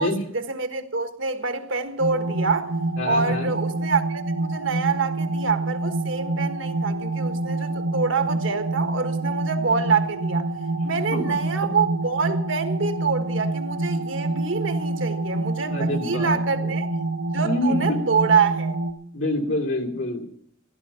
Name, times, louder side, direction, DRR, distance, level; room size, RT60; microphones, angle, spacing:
voice 1, 0.0-2.7 3.0-10.4 10.8-16.9 17.3-18.8, right 5 dB, 70° right, 1.4 m, -26 dB
sound 1, 2.0-18.9, right 2 dB, 55° right, 1.2 m, -27 dB
voice 2, 3.0-3.5 10.8-11.4 15.7-16.7 17.4-18.0 19.1-20.3, left 1 dB, 70° left, 2.8 m, -27 dB
15.5 x 12.5 x 5.7 m
head